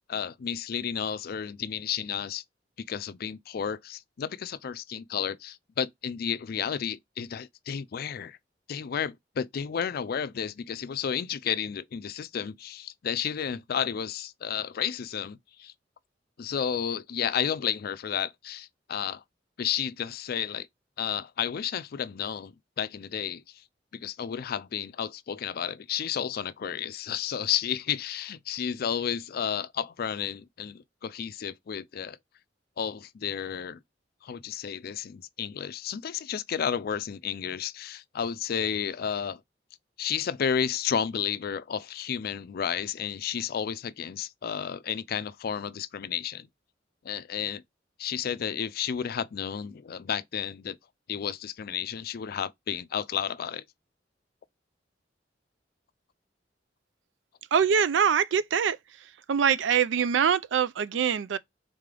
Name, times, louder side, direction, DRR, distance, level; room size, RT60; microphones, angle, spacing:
voice 1, 0.1-2.4 2.8-8.4 8.7-15.7 16.4-19.2 19.6-20.7 21.0-23.4 23.9-32.2 32.8-33.8 34.2-39.4 40.0-46.5 47.0-47.6 48.0-50.8 51.1-53.6, left 8 dB, 55° left, 0.4 m, -32 dB
voice 2, 57.5-58.8 59.3-61.4, right 7 dB, 85° right, 0.4 m, -24 dB
3.7 x 3.3 x 3.7 m
head